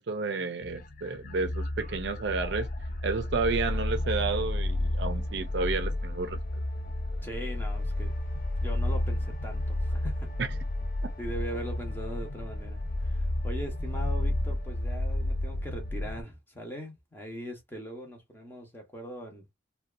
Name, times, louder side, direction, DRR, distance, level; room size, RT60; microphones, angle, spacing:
voice 1, 0.0-2.7 3.0-6.4 10.4-10.5, right 4 dB, 55° right, 0.4 m, -31 dB
sound 1, 0.6-16.2, left 1 dB, 40° left, 0.4 m, -31 dB
voice 2, 7.2-8.1 8.6-10.3 11.2-19.4, equal, 10° left, 0.7 m, -40 dB
2.6 x 2.2 x 2.4 m
head